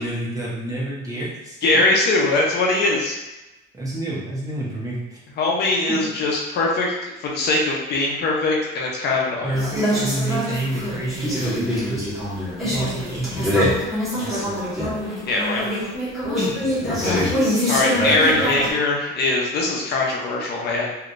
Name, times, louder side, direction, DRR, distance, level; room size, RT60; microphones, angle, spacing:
voice 1, 0.0-1.8 3.7-5.0 5.9-6.0 9.4-12.1 12.6-13.7 16.4-16.9, right 1 dB, 15° right, -6 dB, 0.7 m, -28 dB
voice 2, 1.6-3.2 5.4-9.5 15.2-15.7 17.0-17.4 17.7-20.9, left 2 dB, 55° left, -2 dB, 0.7 m, -21 dB
sound 1, 9.5-18.7, equal, ahead, 1.4 m, -24 dB
3.2 x 2.8 x 2.5 m, 1.0 s
cardioid pair, 155°, 20 cm